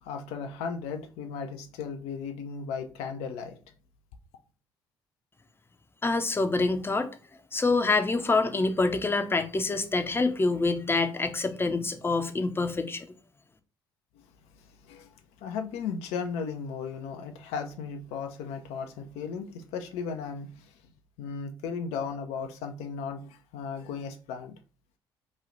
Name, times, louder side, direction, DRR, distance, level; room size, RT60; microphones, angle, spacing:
voice 1, 0.0-3.6 14.8-15.1 15.4-20.7 21.2-24.6, left 6 dB, 70° left, 0.4 m, -36 dB
voice 2, 6.0-7.1 7.5-13.1, left 3 dB, 20° left, 0.6 m, -26 dB
3.0 x 2.3 x 3.8 m
hypercardioid pair, 50°, 11 cm